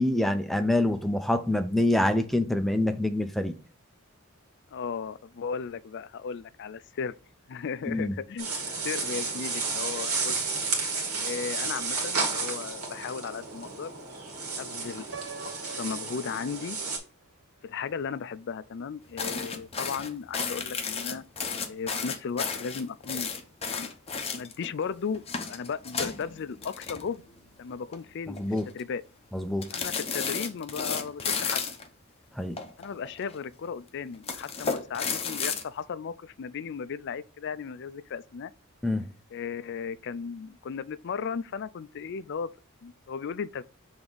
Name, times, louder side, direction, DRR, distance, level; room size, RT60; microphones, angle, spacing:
voice 1, 0.0-3.5 7.9-8.1 28.3-28.6 29.3-29.7 32.4-32.6 38.8-39.1, left 1 dB, ahead, 0.5 m, -26 dB
voice 2, 4.7-7.1 7.5-8.5 8.8-10.3 11.2-13.9 14.6-15.1 15.6-16.8 17.6-21.2 21.7-23.3 23.6-23.9 24.3-25.2 25.5-27.2 27.6-29.0 29.7-31.6 32.8-38.5 39.3-42.5 42.8-43.6, left 6 dB, 55° left, 0.4 m, -35 dB
Pine tree branch light leaves move, 8.4-17.0, right 4 dB, 85° right, 2.0 m, -32 dB
Piano, 15.1-17.1, right 6 dB, 60° right, 0.9 m, -45 dB
sound 1, 19.2-24.7 25.1-27.4 27.7-28.0 28.4-28.8 29.6-31.9 32.6-33.4 34.1-35.6, left 5 dB, 25° left, 0.8 m, -33 dB
6.8 x 3.5 x 3.9 m
head